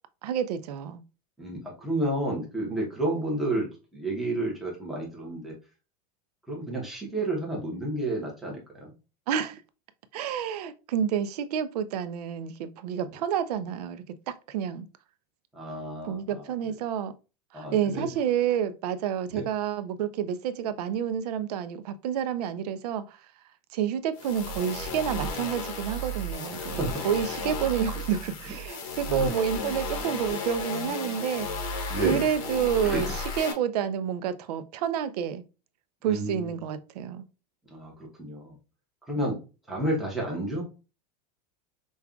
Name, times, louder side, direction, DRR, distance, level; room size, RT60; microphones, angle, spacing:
voice 1, 0.2-1.0 9.3-9.6 10.1-14.9 16.1-17.1 17.5-23.2 23.7-31.5 32.0-33.1 33.4-35.4 36.0-37.3, right 8 dB, 65° right, 0.5 m, -29 dB
voice 2, 1.4-5.5 6.5-8.9 15.5-16.5 17.5-18.1 19.3-19.5 26.5-27.0 29.1-29.3 31.9-32.3 32.8-33.1 36.0-36.5 37.7-38.6 39.1-39.4 39.7-40.6, right 1 dB, ahead, 0.8 m, -31 dB
sound 1, 24.1-33.5, left 2 dB, 55° left, 0.8 m, -34 dB
5.2 x 2.3 x 2.3 m
supercardioid pair, 180°, 21 cm